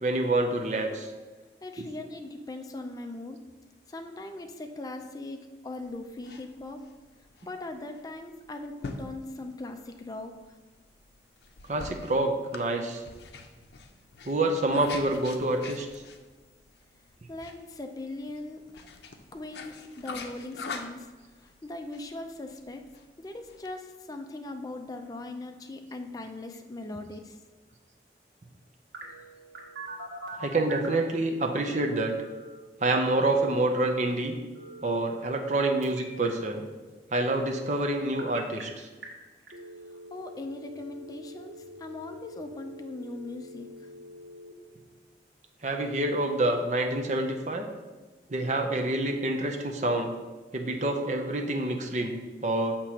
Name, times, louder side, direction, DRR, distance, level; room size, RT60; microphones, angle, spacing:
voice 1, 0.0-1.1 11.7-13.0 14.2-15.9 30.4-32.1 32.8-34.3 34.8-36.7 37.1-38.9 45.6-47.7 48.3-50.1 50.5-52.8, right 2 dB, 40° right, 3 dB, 0.6 m, -27 dB
voice 2, 1.6-3.4 3.9-6.8 7.5-10.4 17.3-18.8 19.3-21.1 21.4-22.8 23.2-27.4 40.1-43.9, left 2 dB, 20° left, 4 dB, 0.4 m, -40 dB
sound 1, 5.8-23.7, left 3 dB, 75° left, 0.6 m, -45 dB
Telephone, 28.9-31.0 31.5-32.6 34.5-35.6 35.8-36.3 37.9-38.6 39.0-39.1 39.5-44.5, right 1 dB, 85° right, 1.5 m, -44 dB
6.5 x 2.9 x 5.8 m, 1.3 s
head